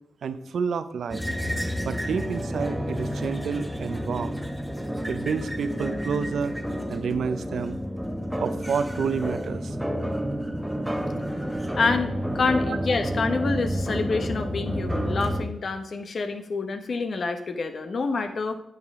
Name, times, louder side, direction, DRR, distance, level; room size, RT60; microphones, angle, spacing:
voice 1, 0.2-1.2 1.8-4.4 5.1-6.5 6.9-7.8 8.4-9.8 12.7-12.8, right 6 dB, 80° right, 11 dB, 0.6 m, -29 dB
sound 1, 1.1-15.5, equal, 5° right, 1.0 m, -30 dB
voice 2, 11.7-18.6, left 4 dB, 60° left, 7 dB, 1.1 m, -27 dB
10.5 x 6.8 x 3.6 m, 0.80 s
cardioid pair, 60°, 0 cm